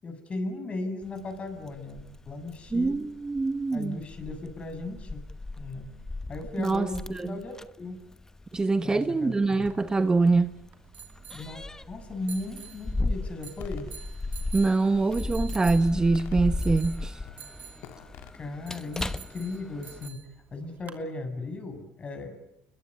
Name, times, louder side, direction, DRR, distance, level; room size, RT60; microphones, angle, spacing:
voice 1, 0.0-3.1 3.7-5.2 5.6-5.9 6.3-8.0 8.8-9.7 11.3-13.9 18.4-22.4, left 2 dB, 30° left, 7.2 m, -37 dB
Keys jangling, 1.0-20.1, left 2 dB, 15° left, 1.0 m, -37 dB
voice 2, 2.7-4.0 6.6-7.4 8.5-10.5 14.5-17.2, right 3 dB, 20° right, 1.0 m, -24 dB
sound 1, 9.4-21.0, right 8 dB, 45° right, 2.8 m, -49 dB
sound 2, 13.6-13.9 14.6-15.3 16.1-16.9 17.2-17.5 17.8-18.4, left 12 dB, 65° left, 1.9 m, -48 dB
29.5 x 21.5 x 8.7 m
hypercardioid pair, 80°, 4 cm